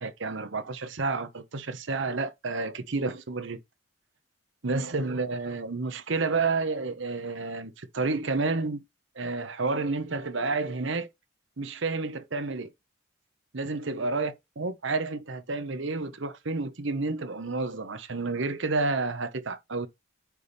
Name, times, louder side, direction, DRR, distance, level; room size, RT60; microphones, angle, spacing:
voice 1, 0.0-3.6 4.6-8.8 9.1-11.1 11.6-12.7 13.5-19.9, right 3 dB, 65° right, 0.9 m, -30 dB
9.2 x 3.5 x 4.1 m
head